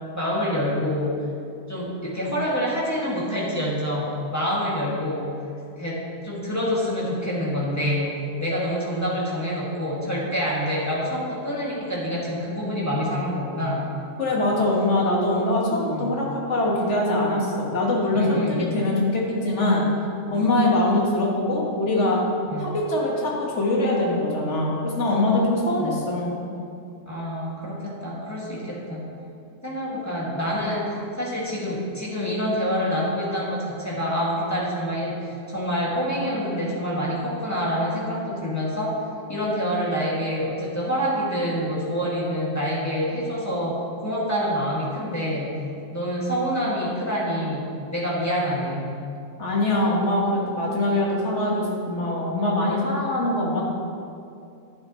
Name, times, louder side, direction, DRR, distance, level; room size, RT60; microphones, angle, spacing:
voice 1, 0.1-1.2 1.7-5.4 5.8-13.9 15.9-16.2 18.1-18.8 20.3-20.5 22.5-22.8 25.8-26.0 27.1-29.1 29.6-39.0 39.3-45.6 45.9-49.0, equal, 10° left, -7 dB, 2.0 m, -27 dB
voice 2, 14.2-19.8 20.3-22.2 22.6-26.4 49.4-53.6, left 1 dB, 45° left, -3 dB, 1.9 m, -23 dB
11.0 x 10.5 x 3.2 m, 2.5 s
omnidirectional pair, 1.7 m